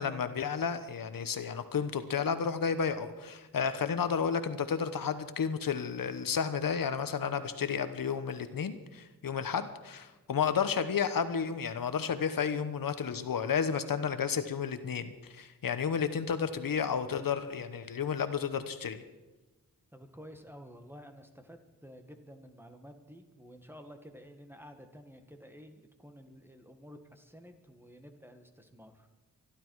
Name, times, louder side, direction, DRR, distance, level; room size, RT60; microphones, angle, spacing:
voice 1, 0.0-19.0, left 6 dB, 70° left, 11 dB, 1.1 m, -32 dB
voice 2, 19.9-29.1, equal, 5° right, 6 dB, 1.6 m, -51 dB
24.0 x 12.0 x 4.7 m, 1.1 s
wide cardioid pair, 80°, 35 cm